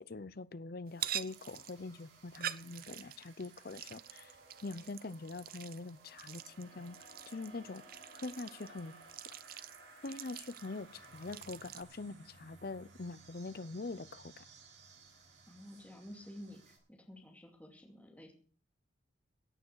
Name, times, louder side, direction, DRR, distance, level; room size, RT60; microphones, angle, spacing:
voice 1, 0.0-4.3 4.6-7.8 8.1-8.9 10.0-14.4, left 3 dB, 50° left, 17 dB, 0.6 m, -44 dB
sound 1, 0.9-11.8, right 11 dB, 45° right, 0.7 m, -46 dB
sound 2, 1.3-16.8, right 3 dB, 65° right, 7.8 m, -59 dB
voice 2, 15.5-18.3, equal, 10° left, 0 dB, 2.6 m, -51 dB
16.5 x 9.0 x 6.3 m, 0.42 s
head